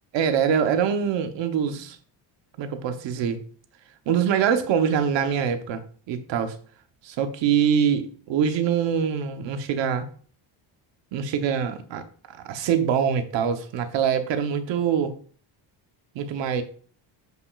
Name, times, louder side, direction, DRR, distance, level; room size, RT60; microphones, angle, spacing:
voice 1, 0.1-2.0 2.6-3.4 4.1-5.8 6.1-6.6 7.0-10.1 11.1-15.1 16.1-16.6, right 7 dB, 65° right, 8 dB, 1.0 m, -24 dB
7.7 x 5.7 x 2.4 m, 0.43 s
cardioid pair, 175°, 47 cm